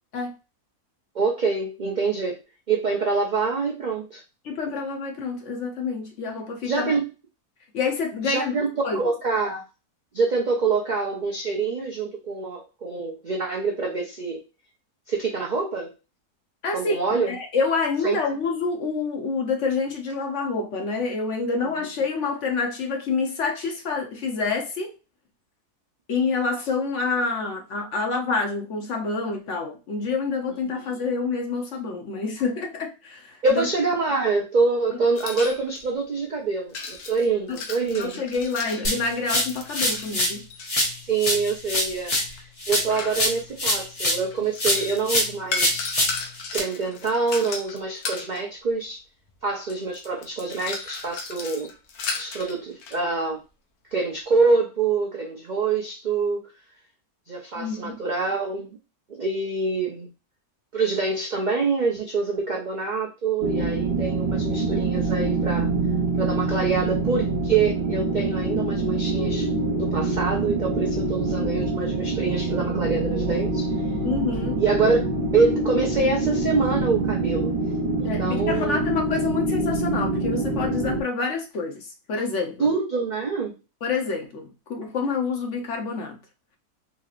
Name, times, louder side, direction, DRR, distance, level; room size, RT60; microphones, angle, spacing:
voice 1, 1.1-2.4 2.7-4.2 6.6-7.1 8.2-8.7 8.9-9.6 10.1-14.4 15.1-15.9 16.7-17.3 18.0-18.2 33.4-38.2 41.0-46.0 46.5-49.0 49.4-51.7 52.2-53.4 53.9-56.5 57.3-58.8 59.2-60.1 60.7-65.7 66.2-69.5 69.8-73.7 74.6-75.1 75.3-77.6 78.0-78.8 82.6-83.5, right 4 dB, 75° right, 0.4 m, -25 dB
voice 2, 4.4-6.9 7.7-8.6 8.8-9.1 16.6-17.0 17.3-24.9 26.1-33.7 37.5-37.6 38.0-40.5 57.5-58.0 74.0-74.6 78.0-82.7 83.8-86.2, left 4 dB, 55° left, 1.0 m, -27 dB
sound 1, 35.2-35.9 36.7-40.7 41.6-43.6 44.3-48.4 49.3-49.4 49.7-53.0, left 4 dB, 80° left, 1.2 m, -35 dB
sound 2, 38.8-40.4 40.7-44.3 44.6-46.6, left 1 dB, 35° left, 0.6 m, -25 dB
sound 3, 63.4-81.0, right 2 dB, 50° right, 0.8 m, -25 dB
4.1 x 2.9 x 2.4 m
omnidirectional pair, 1.6 m